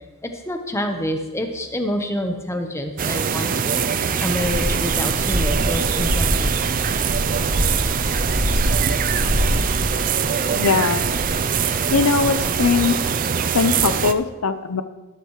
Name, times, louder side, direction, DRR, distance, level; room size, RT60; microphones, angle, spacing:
voice 1, 0.2-3.8 4.2-6.5, left 1 dB, 10° left, 5 dB, 0.9 m, -27 dB
sound 1, 3.0-14.1, right 7 dB, 40° right, 0.4 m, -23 dB
sound 2, 4.3-13.0, equal, 85° right, 2.5 m, -26 dB
voice 2, 10.6-11.0 11.9-13.0 13.5-14.8, left 5 dB, 85° left, 11 dB, 0.7 m, -20 dB
13.0 x 12.5 x 3.1 m, 1.1 s
head